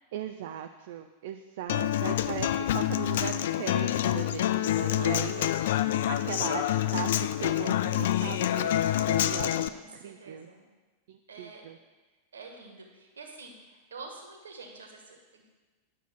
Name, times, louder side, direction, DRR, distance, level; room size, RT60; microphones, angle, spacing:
voice 1, 0.1-10.5 11.1-11.8, right 10 dB, 55° right, 7 dB, 0.5 m, -39 dB
Human voice / Acoustic guitar, 1.7-9.7, left 12 dB, 55° left, 0.4 m, -27 dB
voice 2, 1.7-2.1 5.0-5.5 6.0-6.6 9.7-10.7 11.3-11.7 12.3-15.4, right 3 dB, 70° right, 3 dB, 1.7 m, -47 dB
9.7 x 6.8 x 6.0 m, 1.3 s
figure-of-eight pair, 90°, 0 cm